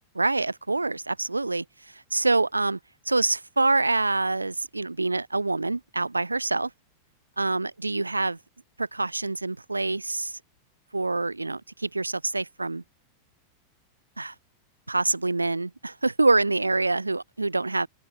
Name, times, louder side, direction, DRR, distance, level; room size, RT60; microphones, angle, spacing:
voice 1, 0.1-1.6 1.9-2.8 3.1-6.7 7.4-8.4 8.8-10.4 10.9-12.8 14.2-14.3 14.9-17.9, right 2 dB, 80° right, 0.4 m, -26 dB
open air
figure-of-eight pair, 90°, 0 cm